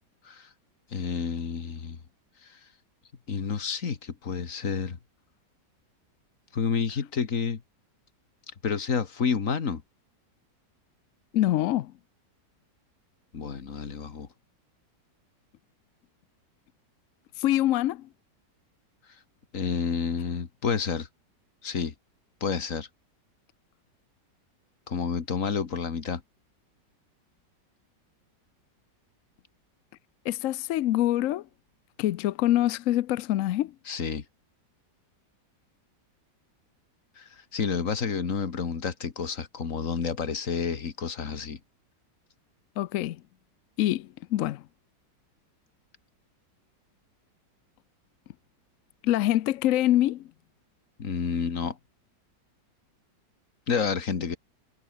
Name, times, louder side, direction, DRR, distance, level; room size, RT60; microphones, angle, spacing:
voice 1, 0.9-2.0 2.4-2.6 3.3-5.0 6.5-7.6 8.6-9.8 13.3-14.3 19.5-21.1 21.6-21.9 22.4-22.9 24.9-26.2 33.9-34.2 37.2-41.6 51.0-51.8 53.7-54.4, left 6 dB, 45° left, 2.0 m, -29 dB
voice 2, 11.3-11.9 17.4-18.1 30.2-31.5 32.0-33.7 42.8-43.2 43.8-44.6 49.0-50.2, left 14 dB, 70° left, 0.7 m, -25 dB
omnidirectional pair, 1.9 m